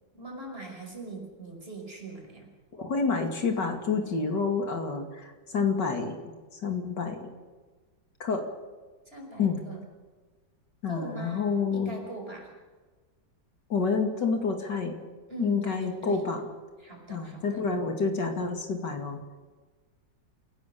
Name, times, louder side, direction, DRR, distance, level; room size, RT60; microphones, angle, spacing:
voice 1, 0.1-2.5 9.1-9.8 10.9-11.5 11.7-12.5 15.3-16.2 16.8-17.6, right 2 dB, 30° right, 1 dB, 5.7 m, -41 dB
voice 2, 2.7-6.2 6.6-7.3 8.2-8.5 9.4-9.6 10.8-11.9 13.7-15.0 15.4-16.4 17.1-19.2, left 5 dB, 70° left, 4 dB, 3.0 m, -28 dB
28.5 x 16.0 x 6.9 m, 1.3 s
omnidirectional pair, 2.0 m